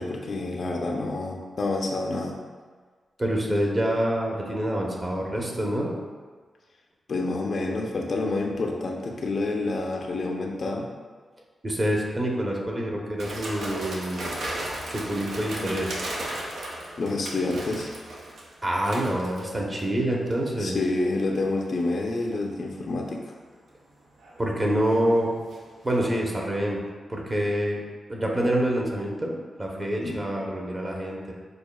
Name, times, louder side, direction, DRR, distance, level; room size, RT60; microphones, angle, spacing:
voice 1, 0.0-2.4 7.1-10.9 17.0-17.9 20.6-23.2 30.0-30.2, left 2 dB, 60° left, 1 dB, 0.5 m, -28 dB
voice 2, 3.2-5.9 11.6-14.3 14.9-16.0 18.6-20.8 24.4-25.3 25.8-26.8 27.1-27.8 28.1-31.3, right 1 dB, 30° right, -1 dB, 0.9 m, -26 dB
sound 1, 13.2-19.9 20.3-20.6 21.4-21.8 24.0-25.6 25.9-26.0, right 1 dB, 80° right, 0.6 m, -36 dB
6.4 x 2.3 x 2.2 m, 1.5 s
cardioid pair, 50°, 0 cm